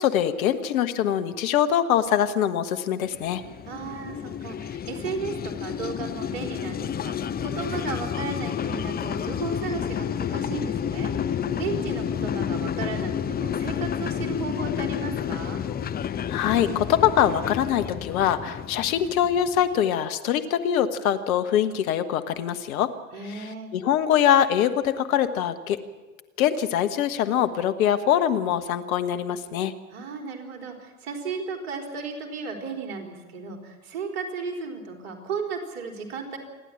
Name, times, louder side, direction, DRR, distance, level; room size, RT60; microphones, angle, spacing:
voice 1, 0.0-3.4 16.3-22.9 23.3-23.5 23.7-25.8 26.4-29.7, left 10 dB, 70° left, 10 dB, 1.5 m, -23 dB
sound 1, 3.1-19.7, left 8 dB, 20° left, 0.7 m, -30 dB
voice 2, 3.7-15.6 23.1-23.7 29.9-36.4, right 5 dB, 60° right, 3 dB, 4.3 m, -35 dB
28.0 x 11.5 x 8.9 m, 1.2 s
hypercardioid pair, 80°, 44 cm